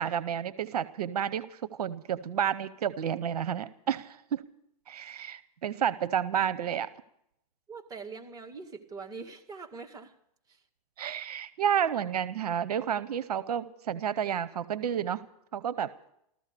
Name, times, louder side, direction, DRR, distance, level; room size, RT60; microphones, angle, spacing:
voice 1, 0.0-4.4 4.9-6.9 11.0-15.2 15.5-16.1, right 9 dB, 80° right, 15 dB, 0.8 m, -31 dB
voice 2, 7.7-10.1 10.5-10.6, right 4 dB, 20° right, 1 dB, 1.9 m, -43 dB
14.5 x 14.5 x 6.7 m, 0.75 s
hypercardioid pair, 125°, 19 cm